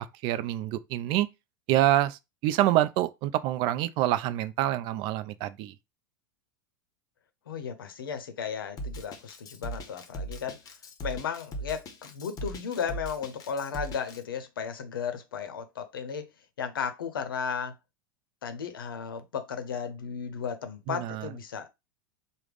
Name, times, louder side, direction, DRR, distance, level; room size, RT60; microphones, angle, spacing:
voice 1, 0.2-1.3 1.7-5.7 20.9-21.3, right 14 dB, 45° right, 0.4 m, -26 dB
voice 2, 7.5-10.6 11.0-16.3 16.6-17.7 18.4-21.7, left 7 dB, 75° left, 0.6 m, -35 dB
Drum kit, 8.8-14.2, right 1 dB, 30° left, 0.7 m, -39 dB
3.4 x 2.1 x 3.4 m
hypercardioid pair, 90°, 12 cm